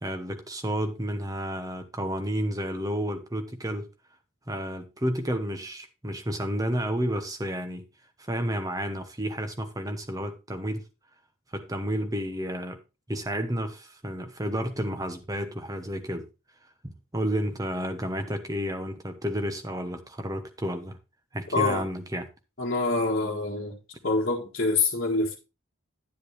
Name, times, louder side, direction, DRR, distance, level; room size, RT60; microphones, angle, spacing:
voice 1, 0.0-3.9 4.5-7.9 8.2-10.8 11.5-12.8 13.1-16.3 16.8-21.0 21.3-22.3, equal, 15° right, 0.9 m, -31 dB
voice 2, 21.5-21.9 22.6-23.8 24.0-25.4, left 3 dB, 50° left, 1.5 m, -26 dB
10.5 x 7.5 x 3.2 m
head